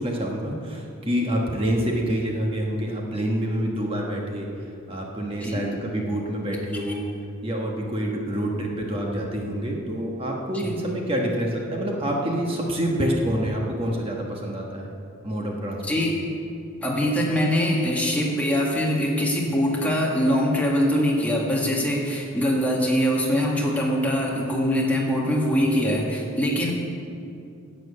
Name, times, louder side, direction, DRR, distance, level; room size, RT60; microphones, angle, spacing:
voice 1, 0.0-7.1 7.4-14.9 15.2-16.0, equal, 25° right, -1 dB, 1.3 m, -27 dB
voice 2, 15.8-16.2 16.8-26.7, equal, 5° left, -3 dB, 1.8 m, -23 dB
11.5 x 7.7 x 8.4 m, 2.4 s
head